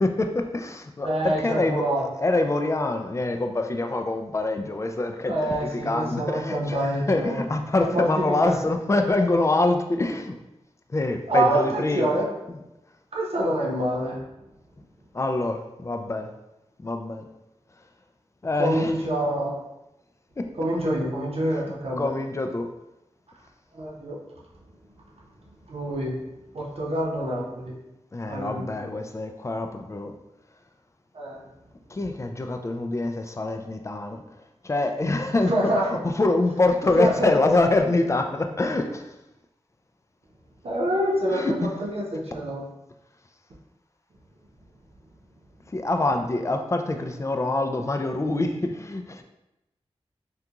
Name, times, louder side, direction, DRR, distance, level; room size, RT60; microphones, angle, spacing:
voice 1, 0.0-1.9 2.2-5.5 5.8-10.4 10.9-12.1 12.5-12.6 15.1-16.3 16.8-17.2 18.4-18.9 20.4-20.5 22.0-22.7 28.1-30.2 31.9-34.2 34.6-35.5 35.9-39.1 41.3-41.5 45.7-49.2, left 2 dB, 25° left, 5 dB, 0.3 m, -25 dB
voice 2, 1.0-2.1 5.3-7.4 7.8-8.5 11.3-12.3 13.1-14.3 18.6-19.6 20.6-22.1 23.7-24.2 25.7-26.2 26.5-27.7 28.3-28.7 31.1-31.4 35.5-35.9 37.0-37.3 40.6-42.6, right 1 dB, 65° right, -3 dB, 0.8 m, -26 dB
3.6 x 2.3 x 2.8 m, 0.93 s
wide cardioid pair, 85°, 11 cm